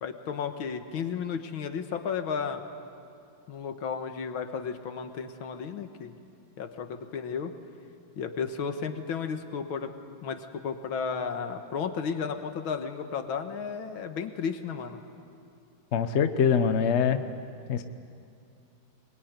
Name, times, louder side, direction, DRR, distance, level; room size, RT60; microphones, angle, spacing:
voice 1, 0.0-2.6 3.5-6.2 6.6-7.5 8.2-9.9 10.2-15.0, left 6 dB, 90° left, 7 dB, 2.1 m, -33 dB
voice 2, 15.9-17.2 17.7-17.8, left 7 dB, 45° left, 9 dB, 0.9 m, -24 dB
24.0 x 22.0 x 9.4 m, 2.5 s
omnidirectional pair, 2.2 m